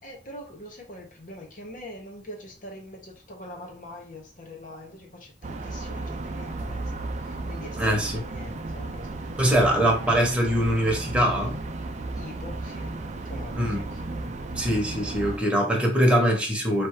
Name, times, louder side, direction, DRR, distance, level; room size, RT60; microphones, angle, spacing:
voice 1, 0.0-9.6 12.1-14.6, left 1 dB, 50° left, 1.2 m, -43 dB
sound 1, 5.4-15.4, right 2 dB, 40° right, 0.5 m, -34 dB
voice 2, 7.8-8.2 9.4-11.6 13.6-13.8 14.6-16.9, equal, 5° right, 1.1 m, -22 dB
3.3 x 2.9 x 4.7 m
head